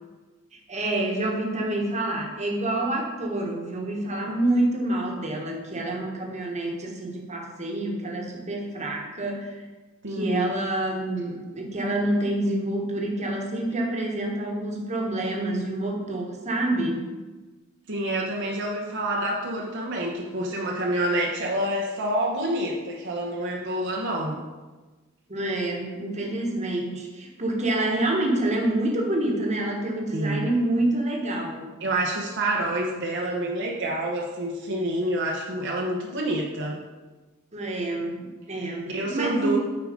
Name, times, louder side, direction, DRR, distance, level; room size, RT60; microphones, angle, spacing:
voice 1, 0.7-9.5 10.1-17.0 25.3-31.6 37.5-39.6, right 1 dB, 35° right, 0 dB, 1.4 m, -27 dB
voice 2, 10.0-10.5 17.9-24.4 30.1-30.6 31.8-36.8 38.5-39.6, right 1 dB, 60° right, -2 dB, 0.9 m, -28 dB
8.5 x 4.8 x 5.1 m, 1.3 s
head